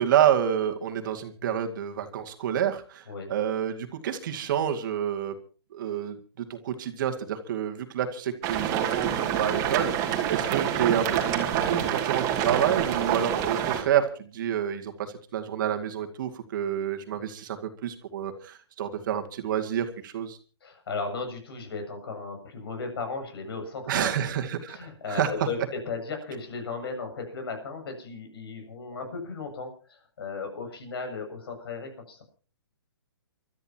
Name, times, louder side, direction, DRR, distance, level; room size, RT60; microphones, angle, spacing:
voice 1, 0.0-5.3 5.7-17.6 17.8-20.4 23.9-24.8 25.1-25.3, right 9 dB, 50° right, 6 dB, 2.3 m, -28 dB
sound 1, 8.4-13.8, right 9 dB, 25° right, 2.5 m, -27 dB
voice 2, 20.6-24.3 24.7-25.6 25.8-32.2, left 4 dB, 65° left, 5 dB, 7.4 m, -36 dB
29.0 x 13.5 x 3.0 m, 0.38 s
hypercardioid pair, 145°, 14 cm